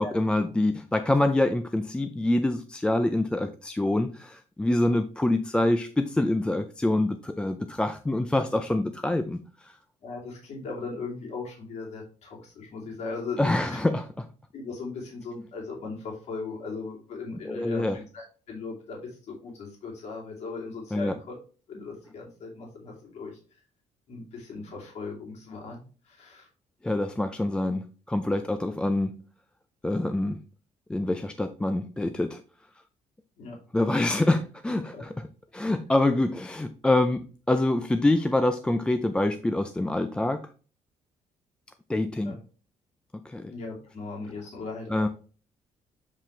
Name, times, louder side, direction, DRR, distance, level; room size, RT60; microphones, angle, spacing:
voice 1, 0.0-9.8 13.4-14.3 17.5-18.0 20.9-21.2 26.8-29.2 29.8-30.4 30.9-32.4 33.7-35.1 35.5-40.5 41.9-42.4 43.2-43.5 44.9-45.1, left 1 dB, 10° left, 8 dB, 0.3 m, -26 dB
voice 2, 10.0-13.8 14.5-21.4 21.7-23.4 24.1-26.5 33.4-33.6 34.9-35.0 42.2-42.4 43.5-45.1, left 4 dB, 60° left, -2 dB, 2.6 m, -38 dB
7.4 x 4.9 x 3.3 m, 0.38 s
cardioid pair, 150°, 13 cm